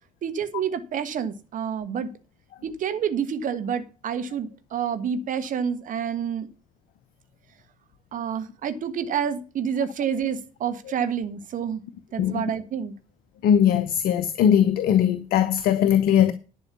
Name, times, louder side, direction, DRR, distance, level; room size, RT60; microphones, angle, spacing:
voice 1, 0.2-2.1 2.6-6.5 8.1-11.8 12.1-12.9, right 7 dB, 45° right, 1.4 m, -28 dB
voice 2, 13.4-16.3, left 9 dB, 55° left, 0.8 m, -20 dB
11.0 x 5.5 x 6.8 m
figure-of-eight pair, 50°, 19 cm